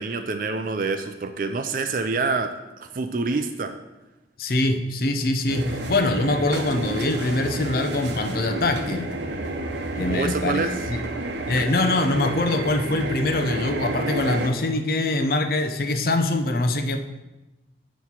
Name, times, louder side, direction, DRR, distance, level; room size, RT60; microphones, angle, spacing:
voice 1, 0.0-3.7 10.1-10.7, right 3 dB, 50° right, 7 dB, 0.4 m, -26 dB
voice 2, 4.4-9.1 10.0-11.0 11.5-17.0, left 2 dB, 55° left, 7 dB, 0.6 m, -23 dB
sound 1, 5.5-14.5, right 2 dB, 80° right, 0.8 m, -30 dB
9.3 x 3.2 x 5.7 m, 1.0 s
head